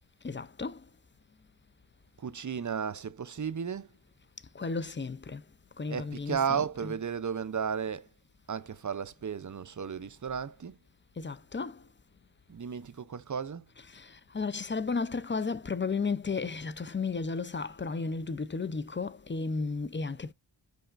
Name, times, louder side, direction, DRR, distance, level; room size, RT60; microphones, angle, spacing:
voice 1, 0.2-0.8 4.6-5.4 5.8-6.9 11.2-11.8 13.9-14.1 14.3-20.3, left 4 dB, 25° left, 0.5 m, -33 dB
voice 2, 2.2-3.9 5.9-8.1 8.5-10.8 12.5-13.7, right 7 dB, 40° right, 0.6 m, -34 dB
5.6 x 3.9 x 2.4 m
cardioid pair, 50°, 47 cm